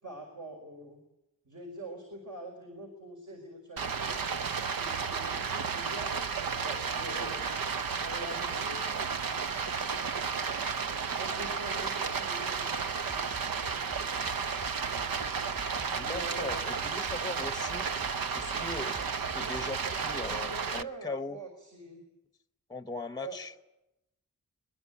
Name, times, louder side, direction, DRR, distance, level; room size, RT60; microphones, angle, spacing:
voice 1, 0.0-1.0 1.5-4.2 4.7-6.1 6.6-7.4 7.8-8.8 11.2-12.9 13.6-14.1 16.0-16.7 20.2-22.0 23.2-23.4, right 2 dB, 60° right, 1 dB, 5.4 m, -44 dB
Stream, 3.8-20.8, right 5 dB, 75° right, 0.9 m, -33 dB
Bass drum, 13.1-20.5, right 2 dB, 30° right, 4.6 m, -48 dB
voice 2, 15.9-17.9 18.3-21.4 22.7-23.5, left 2 dB, 10° left, 12 dB, 0.8 m, -39 dB
22.0 x 20.5 x 8.5 m, 0.87 s
wide cardioid pair, 95°, 35 cm